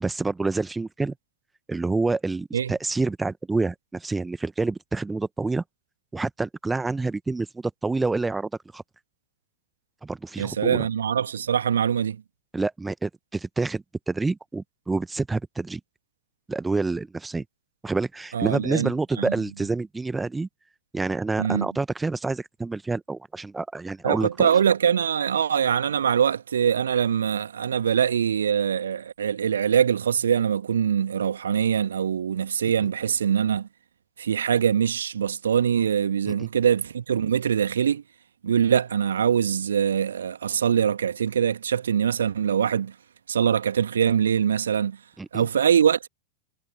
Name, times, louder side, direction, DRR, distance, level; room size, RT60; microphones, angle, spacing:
voice 1, 0.0-1.1 1.7-5.6 6.1-8.8 10.0-10.9 12.5-15.8 16.5-17.4 17.8-20.5 20.9-24.5 36.3-36.5 45.2-45.4, right 3 dB, 10° right, 1.2 m, -28 dB
voice 2, 10.4-12.2 18.3-18.9 19.2-19.3 21.4-21.7 24.0-33.7 34.2-38.0 38.4-42.9 43.3-45.0 45.3-46.1, right 8 dB, 65° right, 1.8 m, -23 dB
figure-of-eight pair, 90°, 0 cm